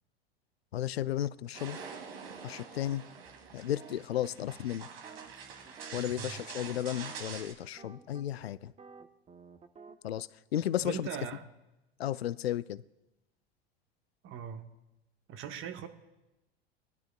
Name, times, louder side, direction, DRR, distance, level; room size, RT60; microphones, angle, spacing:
voice 1, 0.7-1.8 2.4-3.0 3.5-4.9 5.9-8.7 10.0-11.1 12.0-12.8, left 12 dB, 80° left, 19 dB, 0.5 m, -34 dB
sound 1, 1.5-7.5, right 6 dB, 70° right, 2.1 m, -46 dB
sound 2, 2.9-10.2, right 5 dB, 20° right, 0.9 m, -54 dB
voice 2, 10.8-11.5 14.2-14.7 15.3-15.9, right 8 dB, 40° right, 7 dB, 1.3 m, -40 dB
22.0 x 12.0 x 2.2 m, 0.97 s
figure-of-eight pair, 80°, 30 cm